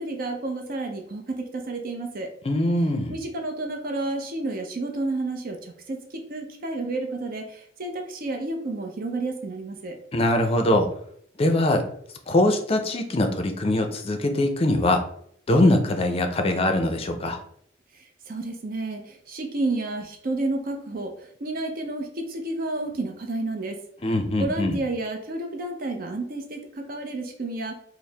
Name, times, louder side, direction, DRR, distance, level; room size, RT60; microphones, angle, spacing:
voice 1, 0.0-2.3 3.1-10.0 17.9-23.8 24.4-27.8, right 2 dB, 50° right, 4 dB, 0.5 m, -31 dB
voice 2, 2.4-3.1 10.1-10.9 11.4-11.8 12.3-15.0 15.5-17.4 24.0-24.8, left 1 dB, 30° left, 6 dB, 0.5 m, -22 dB
4.4 x 2.0 x 3.3 m, 0.66 s
head